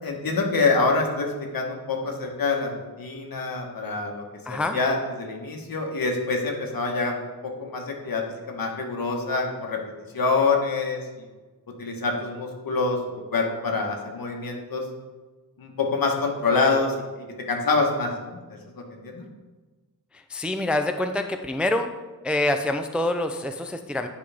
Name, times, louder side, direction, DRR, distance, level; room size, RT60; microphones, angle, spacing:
voice 1, 0.0-7.1 7.4-9.8 10.1-11.3 11.8-13.0 13.3-14.8 15.6-18.4 18.7-19.3, left 3 dB, 65° left, 1 dB, 1.3 m, -26 dB
voice 2, 4.5-4.8 20.1-21.9 22.2-24.1, left 1 dB, 5° right, 6 dB, 0.3 m, -26 dB
9.6 x 5.0 x 3.4 m, 1.3 s
wide cardioid pair, 110°, 37 cm